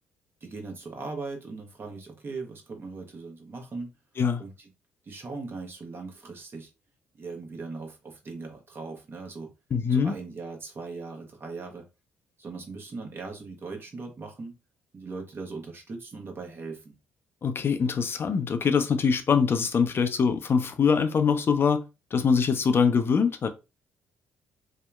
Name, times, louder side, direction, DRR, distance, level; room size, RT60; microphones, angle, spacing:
voice 1, 0.4-3.9 4.4-4.7 5.0-6.7 7.2-9.5 9.9-11.9 12.4-14.5 14.9-16.9, right 3 dB, 40° right, 0.9 m, -39 dB
voice 2, 9.7-10.1 17.4-21.8 22.1-23.5, left 6 dB, 45° left, 0.4 m, -23 dB
2.8 x 2.0 x 2.3 m
hypercardioid pair, 55°, 6 cm